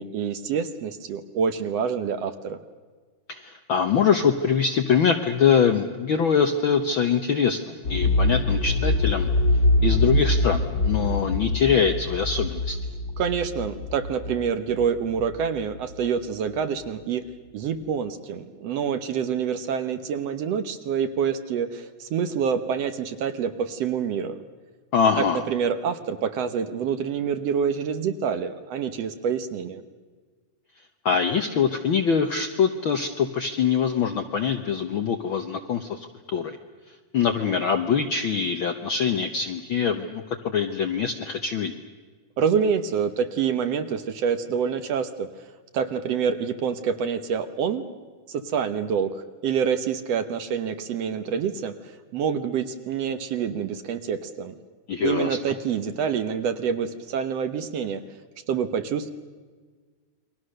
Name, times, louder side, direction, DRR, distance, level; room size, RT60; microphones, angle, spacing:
voice 1, 0.0-2.6 13.2-17.2 17.5-24.4 25.2-29.8 42.4-45.3 45.7-47.8 48.3-51.7 52.1-54.6 55.0-58.0 58.5-59.1, right 7 dB, 65° right, 10 dB, 1.9 m, -27 dB
voice 2, 3.3-9.3 9.8-12.8 24.9-25.4 31.0-36.6 37.1-41.7 54.9-55.4, left 6 dB, 65° left, 7 dB, 1.2 m, -23 dB
sound 1, 7.8-15.6 15.9-16.0, left 2 dB, 40° left, 2.1 m, -24 dB
29.0 x 23.0 x 6.5 m, 1.5 s
omnidirectional pair, 3.5 m